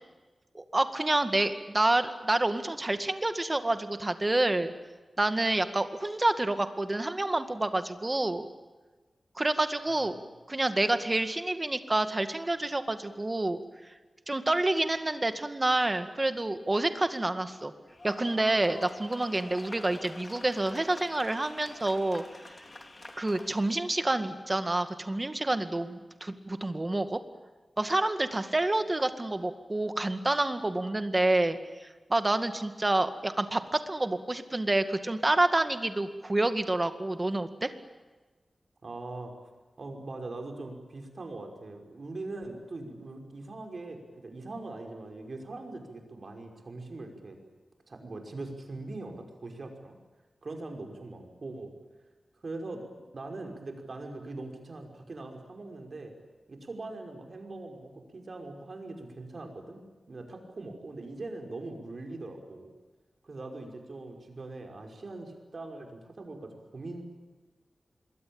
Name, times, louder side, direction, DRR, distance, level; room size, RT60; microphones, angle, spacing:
voice 1, 0.5-4.7 5.2-8.5 9.4-10.2 10.5-13.6 14.3-17.7 18.0-22.2 23.2-27.2 27.8-37.7, right 2 dB, 25° right, 9 dB, 2.1 m, -28 dB
sound 1, 17.9-23.8, left 2 dB, 35° left, 3.6 m, -47 dB
voice 2, 38.8-39.3 39.8-47.4 47.9-50.0 50.4-51.7 52.4-52.8 53.1-56.1 56.5-59.8 60.1-62.7 63.2-67.0, right 2 dB, 55° right, 3 dB, 5.6 m, -41 dB
26.5 x 22.0 x 8.9 m, 1.3 s
wide cardioid pair, 100°, 0 cm